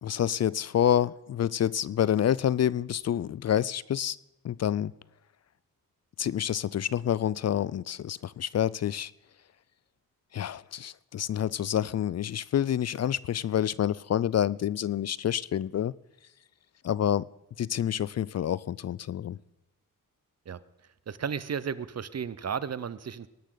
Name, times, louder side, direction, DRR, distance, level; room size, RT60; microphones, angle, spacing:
voice 1, 0.0-4.2 4.4-4.9 6.2-9.1 10.3-15.9 16.8-17.2 17.6-19.4, left 10 dB, 50° left, 21 dB, 0.4 m, -28 dB
voice 2, 21.1-23.3, right 7 dB, 50° right, 16 dB, 0.8 m, -34 dB
19.0 x 11.5 x 3.9 m, 0.94 s
cardioid pair, 70°, 34 cm